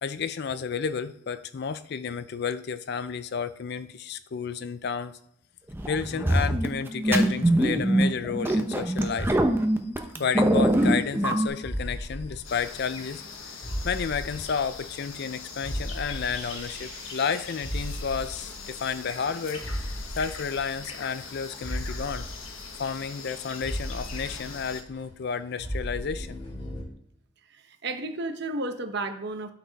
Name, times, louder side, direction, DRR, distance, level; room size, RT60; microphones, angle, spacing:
voice 1, 0.0-5.2 5.9-9.3 10.2-13.6 13.8-19.7 20.2-22.3 22.8-26.4, left 6 dB, 55° left, 14 dB, 0.4 m, -31 dB
sound 1, 5.7-11.5, right 1 dB, 10° right, 0.7 m, -23 dB
sound 2, 10.7-11.3 11.6-15.3 15.6-25.0 25.3-26.8, equal, 30° left, 3.1 m, -37 dB
sound 3, 12.4-24.8, left 5 dB, 85° left, 1.1 m, -41 dB
voice 2, 27.5-29.5, right 2 dB, 55° right, 7 dB, 0.9 m, -32 dB
9.3 x 4.3 x 4.0 m, 0.76 s
head